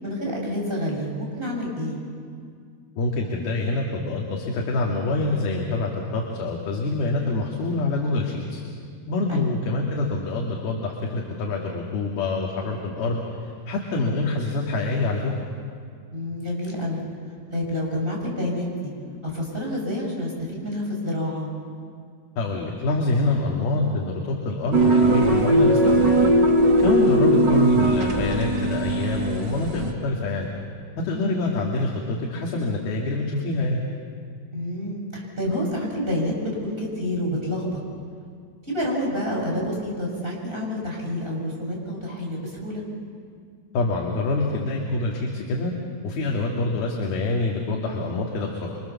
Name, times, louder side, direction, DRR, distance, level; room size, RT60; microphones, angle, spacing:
voice 1, 0.0-2.0 9.3-9.5 16.1-17.0 17.5-18.9 19.2-21.5 31.1-31.4 34.5-37.8 38.6-42.8, left 1 dB, 10° right, -2 dB, 7.2 m, -28 dB
voice 2, 3.0-8.6 9.1-15.3 22.4-26.4 26.8-30.5 31.0-33.8 43.7-45.7 46.0-48.8, left 2 dB, 70° left, -1 dB, 4.0 m, -26 dB
sound 1, 24.7-29.9, right 1 dB, 40° right, 1.6 m, -19 dB
27.5 x 26.0 x 7.1 m, 2.2 s
omnidirectional pair, 4.7 m